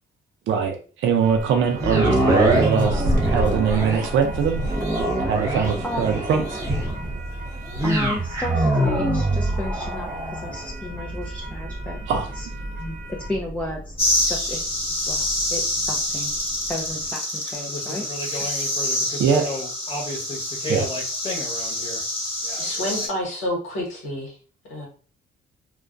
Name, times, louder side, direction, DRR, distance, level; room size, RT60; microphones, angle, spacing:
voice 1, 0.5-4.6 5.2-6.6 12.1-12.3 19.2-19.5 20.7-20.9, right 7 dB, 70° right, 4 dB, 0.5 m, -22 dB
sound 1, 1.2-13.4, equal, 40° right, 0.8 m, -32 dB
sound 2, 1.8-16.0 16.5-16.6, right 1 dB, 15° right, 0.9 m, -25 dB
voice 2, 7.8-12.5 12.7-14.0 14.2-16.3 16.7-18.1 18.4-18.5, left 1 dB, 5° left, 0 dB, 0.4 m, -33 dB
sound 3, 14.0-23.1, left 1 dB, 25° left, 1.0 m, -26 dB
voice 3, 22.6-24.3 24.7-24.9, left 1 dB, 80° left, 0 dB, 1.1 m, -29 dB
2.3 x 2.1 x 2.4 m, 0.39 s
cardioid pair, 90°, 20 cm